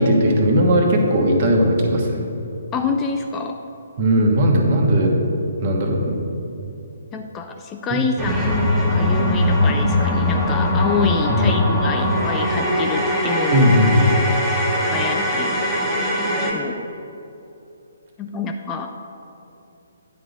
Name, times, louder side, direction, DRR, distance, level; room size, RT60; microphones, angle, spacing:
voice 1, 0.0-2.2 4.0-5.1 5.6-6.2 7.9-8.0 11.3-11.5 13.5-14.2, equal, 40° right, 1 dB, 1.2 m, -17 dB
voice 2, 2.7-3.6 7.1-13.7 14.9-15.5 15.9-16.1 16.4-16.9 18.2-19.0, left 5 dB, 15° left, 4 dB, 0.4 m, -27 dB
sound 1, 8.2-16.5, left 1 dB, 5° right, 1.1 m, -21 dB
9.9 x 3.8 x 6.4 m, 2.8 s
figure-of-eight pair, 135°, 0 cm